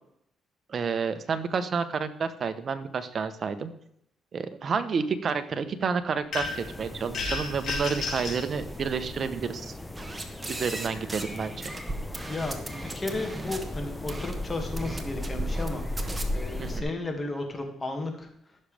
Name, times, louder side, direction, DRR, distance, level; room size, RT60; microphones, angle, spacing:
voice 1, 0.7-3.7 4.3-9.7 10.5-11.5 16.6-16.8, right 5 dB, 50° right, 10 dB, 1.0 m, -30 dB
sound 1, 6.3-6.7 7.1-8.4, left 3 dB, 65° left, 3.4 m, -31 dB
sound 2, 6.4-16.8, left 1 dB, 10° left, 1.0 m, -36 dB
sound 3, 9.9-11.4 11.6-13.6 14.1-14.3 14.8-15.7 16.0-16.2, right 2 dB, 15° right, 1.3 m, -36 dB
voice 2, 12.3-18.3, left 2 dB, 25° left, 3 dB, 2.2 m, -34 dB
15.5 x 6.5 x 3.5 m, 0.73 s
cardioid pair, 90°, 0 cm